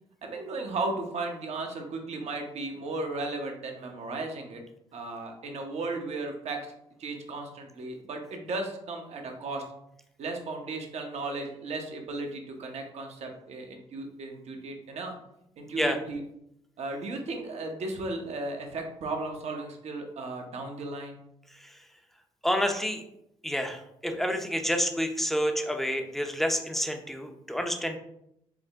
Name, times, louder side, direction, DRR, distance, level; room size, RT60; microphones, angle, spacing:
voice 1, 0.2-4.6 4.9-6.7 7.0-9.6 10.2-15.2 15.6-16.2 16.8-21.2, right 2 dB, 55° right, 3 dB, 0.9 m, -35 dB
voice 2, 22.4-23.0 23.4-28.0, equal, ahead, 4 dB, 0.7 m, -29 dB
4.8 x 2.1 x 3.5 m, 0.78 s
supercardioid pair, 60°, 13 cm